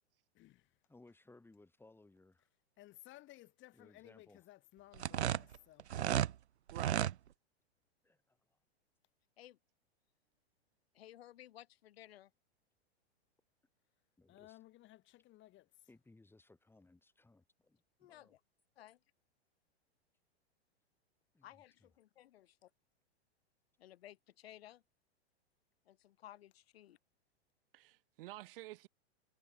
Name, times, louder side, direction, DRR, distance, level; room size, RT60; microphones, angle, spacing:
voice 1, 0.3-0.7 2.8-5.9 14.3-15.7, left 16 dB, 35° left, 7.0 m, -59 dB
voice 2, 0.9-2.5 3.7-4.4 8.0-8.4 14.2-14.6 15.9-18.3 21.3-21.5, left 2 dB, 5° left, 7.9 m, -63 dB
sound 1, 4.9-6.3 6.7-7.1, right 11 dB, 85° right, 0.7 m, -33 dB
voice 3, 6.7-7.1 27.7-28.9, right 17 dB, 60° right, 1.4 m, -49 dB
voice 4, 10.9-12.3 18.0-18.4 18.8-19.0 21.4-22.5 23.8-24.8 25.8-27.0, left 13 dB, 65° left, 4.9 m, -57 dB
hypercardioid pair, 115°, 32 cm